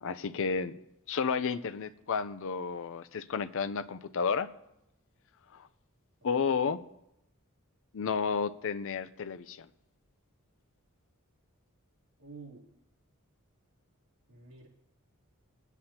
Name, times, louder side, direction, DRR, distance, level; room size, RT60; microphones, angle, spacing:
voice 1, 0.0-0.8 1.1-4.5 5.5-5.7 6.2-6.8 7.9-9.7, left 5 dB, 65° left, 0.5 m, -32 dB
voice 2, 12.2-12.7 14.3-14.7, right 4 dB, 65° right, 3.1 m, -50 dB
21.0 x 9.2 x 2.9 m
head